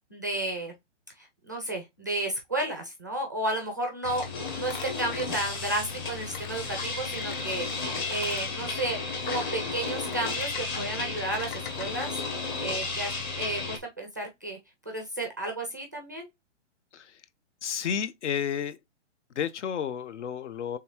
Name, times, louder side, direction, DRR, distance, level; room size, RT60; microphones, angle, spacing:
voice 1, 0.1-0.7 1.2-4.2 4.5-7.7 8.1-9.0 9.2-12.1 12.6-14.6 14.9-16.3, right 1 dB, 15° right, 0.4 m, -32 dB
sound 1, 4.0-12.1, left 6 dB, 45° left, 1.0 m, -44 dB
sound 2, 4.0-13.8, left 4 dB, 20° left, 0.8 m, -33 dB
voice 2, 17.6-18.8 19.4-20.8, left 8 dB, 70° left, 0.8 m, -31 dB
5.2 x 3.5 x 2.9 m
hypercardioid pair, 175°, 36 cm